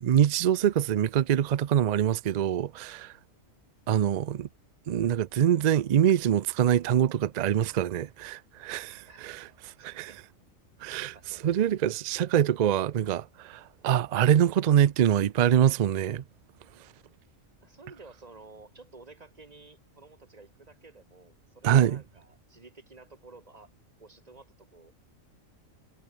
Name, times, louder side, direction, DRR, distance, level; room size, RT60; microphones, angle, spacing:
voice 1, 0.0-3.1 3.9-4.5 4.9-9.4 9.8-10.1 10.8-11.2 11.4-16.2 21.6-22.0, right 10 dB, 70° right, 0.4 m, -24 dB
voice 2, 9.0-10.2 10.9-11.6 17.6-23.7 24.0-24.9, right 3 dB, 30° right, 1.9 m, -53 dB
omnidirectional pair, 1.4 m